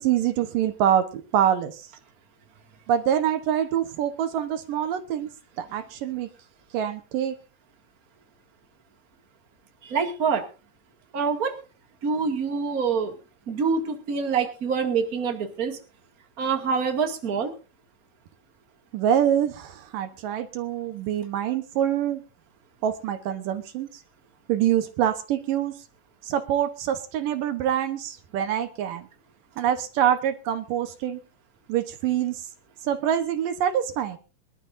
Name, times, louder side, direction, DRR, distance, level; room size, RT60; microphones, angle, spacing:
voice 1, 0.0-1.9 2.9-5.3 5.6-6.3 6.7-7.4 18.9-22.2 22.8-23.9 24.5-25.7 26.2-29.1 29.6-31.2 31.7-32.5 32.8-34.2, right 10 dB, 75° right, 9 dB, 2.7 m, -25 dB
voice 2, 9.8-10.4 11.1-11.6 12.0-13.1 13.5-15.8 16.4-17.5, right 5 dB, 30° right, 4 dB, 2.2 m, -25 dB
24.5 x 12.5 x 2.6 m, 0.33 s
omnidirectional pair, 4.0 m